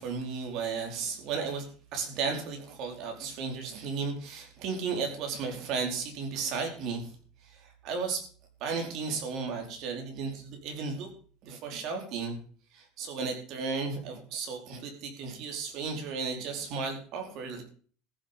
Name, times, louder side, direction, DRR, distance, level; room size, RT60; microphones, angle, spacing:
voice 1, 0.0-7.1 7.4-8.2 8.6-11.1 11.4-12.4 12.7-17.6, right 5 dB, 45° right, 3 dB, 4.5 m, -34 dB
14.5 x 7.9 x 6.9 m, 0.43 s
cardioid pair, 175°, 0 cm